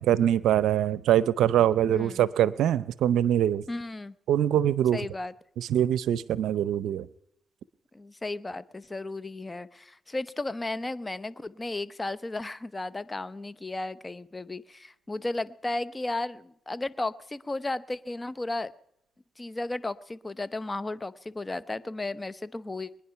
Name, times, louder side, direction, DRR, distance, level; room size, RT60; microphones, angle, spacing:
voice 1, 0.0-3.6 4.3-5.0 5.6-7.1, right 11 dB, 85° right, 0.6 m, -23 dB
voice 2, 1.9-2.3 3.7-4.1 4.9-5.3 7.9-18.7 19.4-23.0, left 2 dB, 25° left, 0.8 m, -34 dB
22.5 x 10.0 x 5.8 m
cardioid pair, 65°, 0 cm